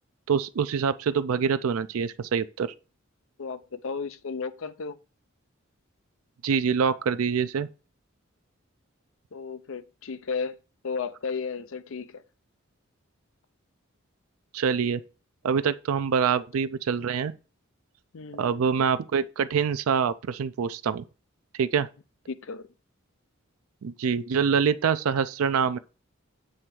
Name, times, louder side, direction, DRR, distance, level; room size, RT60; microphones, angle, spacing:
voice 1, 0.3-2.7 6.4-7.7 14.5-15.0 15.4-17.3 18.4-21.0 21.6-21.9 23.8-25.8, right 6 dB, 90° right, 0.4 m, -25 dB
voice 2, 3.4-5.0 9.3-10.6 10.8-12.2 18.1-18.6 22.3-22.7, left 5 dB, 70° left, 0.6 m, -34 dB
7.7 x 3.3 x 6.0 m
head